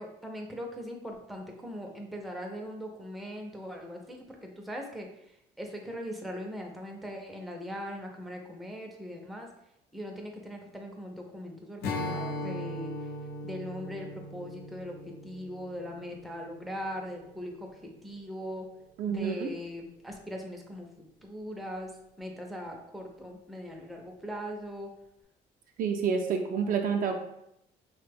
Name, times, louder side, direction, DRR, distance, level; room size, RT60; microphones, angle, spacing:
voice 1, 0.0-5.3 5.6-9.5 9.9-13.1 13.4-18.7 19.1-20.9 21.2-21.9 22.2-24.9, equal, ahead, 1 dB, 0.5 m, -40 dB
Strum, 11.8-17.2, left 1 dB, 75° left, 0.5 m, -39 dB
voice 2, 19.0-19.5 25.8-27.1, right 6 dB, 55° right, 3 dB, 0.4 m, -28 dB
3.0 x 2.1 x 3.3 m, 0.79 s
cardioid pair, 110°, 17 cm